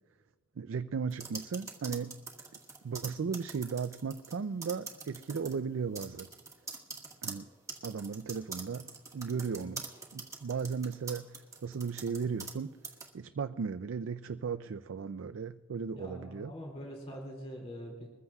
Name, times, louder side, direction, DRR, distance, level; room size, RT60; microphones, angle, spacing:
voice 1, 0.6-2.2 2.8-6.3 7.2-7.5 7.8-8.9 9.1-9.9 10.1-12.8 13.1-16.5, right 5 dB, 70° right, 12 dB, 0.4 m, -36 dB
sound 1, 1.1-4.3 4.6-5.5 5.9-12.6 12.8-13.1, right 4 dB, 15° right, 1.6 m, -44 dB
voice 2, 16.0-18.1, equal, 30° left, -1 dB, 2.4 m, -43 dB
22.0 x 15.0 x 2.4 m, 1.4 s
head